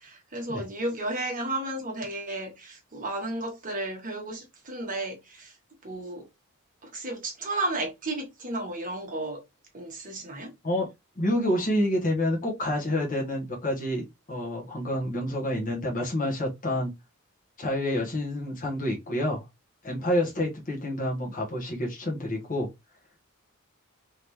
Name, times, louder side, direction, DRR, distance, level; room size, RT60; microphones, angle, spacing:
voice 1, 0.0-5.5 5.8-6.2 6.8-9.4 9.7-10.5 11.5-11.6, right 2 dB, 40° right, 1.3 m, -33 dB
voice 2, 11.1-16.9 17.6-19.4 19.8-22.7, left 1 dB, 40° left, 1.5 m, -28 dB
3.8 x 3.6 x 3.1 m
head